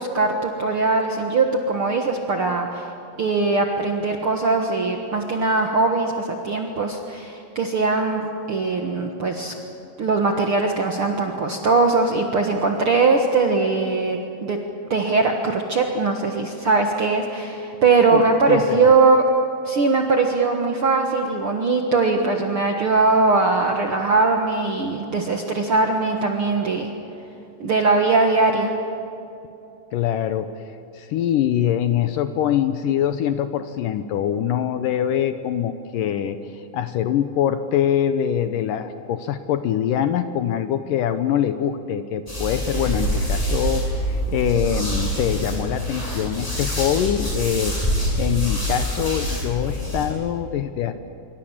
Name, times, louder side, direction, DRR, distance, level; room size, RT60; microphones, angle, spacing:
voice 1, 0.0-2.9 3.2-9.5 10.0-14.6 14.9-19.2 19.6-26.9 27.6-28.7, right 3 dB, 55° right, 2 dB, 1.5 m, -20 dB
voice 2, 18.5-18.8 29.9-30.5 30.9-47.8 48.2-50.9, left 10 dB, 75° left, 10 dB, 2.1 m, -24 dB
sound 1, 42.3-50.1, equal, 10° left, 7.3 m, -25 dB
26.0 x 24.0 x 7.4 m, 2.9 s
omnidirectional pair, 4.4 m